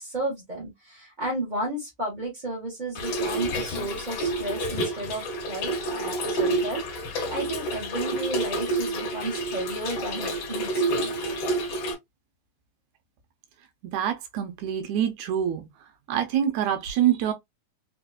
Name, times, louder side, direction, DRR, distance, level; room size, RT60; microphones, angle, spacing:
voice 1, 0.0-5.2 5.5-11.2, right 1 dB, 90° right, 0.4 m, -33 dB
Trickle dribble / Fill (with liquid), 2.9-11.9, right 1 dB, 70° left, 1.1 m, -29 dB
voice 2, 13.8-15.7 16.1-17.3, right 10 dB, 75° right, 2.0 m, -25 dB
4.9 x 2.6 x 2.3 m
omnidirectional pair, 3.6 m